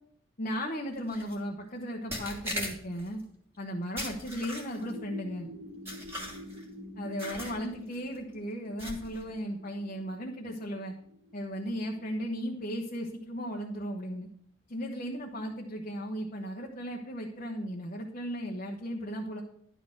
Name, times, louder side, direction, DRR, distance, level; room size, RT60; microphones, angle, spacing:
voice 1, 0.4-3.2 3.6-5.5 7.0-10.9 11.3-14.3 14.7-19.4, equal, 40° left, 0 dB, 0.9 m, -36 dB
sound 1, 1.1-1.3 2.1-3.1 4.0-4.9 5.9-6.6 7.2-7.6 7.9-8.2 8.8-9.2, equal, 10° right, 1.8 m, -38 dB
sound 2, 4.8-12.3, left 1 dB, 50° right, 1.7 m, -48 dB
11.0 x 4.2 x 7.6 m, 0.68 s
head